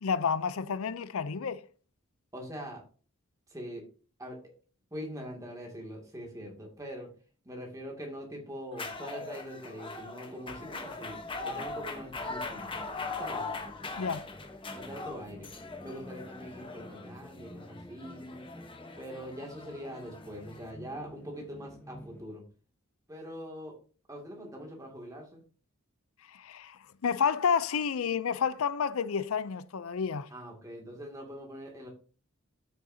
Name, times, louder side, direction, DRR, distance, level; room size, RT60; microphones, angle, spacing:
voice 1, 0.0-1.6 14.0-14.3 26.3-30.3, left 6 dB, 90° left, 0.5 m, -30 dB
voice 2, 2.3-2.8 3.5-3.8 4.2-4.4 4.9-7.1 7.4-11.2 11.4-12.9 13.2-13.5 14.7-15.5 15.8-18.4 19.0-22.4 23.1-23.8 24.1-25.4 30.3-31.9, equal, 15° right, 2.4 m, -43 dB
sound 1, 8.7-20.7, left 3 dB, 25° left, 1.1 m, -41 dB
sound 2, 10.5-22.3, left 1 dB, 10° left, 0.4 m, -51 dB
12.5 x 6.5 x 2.8 m
head